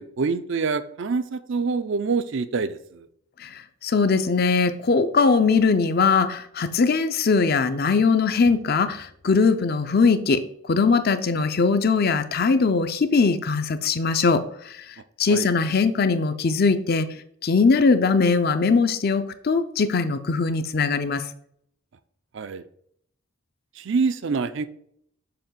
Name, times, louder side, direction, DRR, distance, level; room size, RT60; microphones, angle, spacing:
voice 1, 0.0-3.0 15.3-15.5 22.3-22.6 23.8-24.7, right 4 dB, 55° right, 12 dB, 0.4 m, -26 dB
voice 2, 3.4-17.1 17.4-21.2, left 4 dB, 45° left, 10 dB, 0.5 m, -21 dB
6.8 x 3.0 x 5.7 m, 0.67 s
head